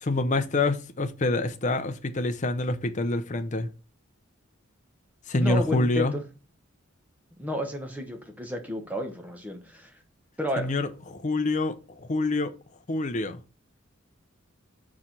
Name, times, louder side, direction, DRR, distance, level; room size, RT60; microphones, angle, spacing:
voice 1, 0.0-3.7 5.3-6.2 10.6-12.5 12.9-13.4, left 2 dB, 35° left, 0.6 m, -26 dB
voice 2, 5.3-6.2 7.4-9.9 10.4-10.7, equal, 10° right, 1.0 m, -32 dB
4.8 x 4.2 x 5.9 m
head